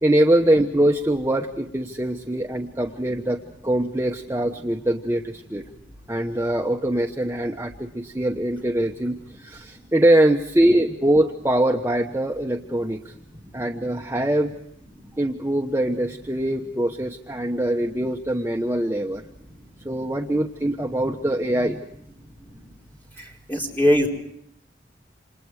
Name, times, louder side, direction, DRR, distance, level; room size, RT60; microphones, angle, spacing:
voice 1, 0.0-5.6 6.1-13.1 13.5-14.5 15.2-19.2 19.8-21.8, right 1 dB, 15° right, 1 dB, 1.1 m, -23 dB
voice 2, 23.5-24.1, equal, 10° left, -1 dB, 4.8 m, -19 dB
29.0 x 27.5 x 4.9 m, 0.73 s
head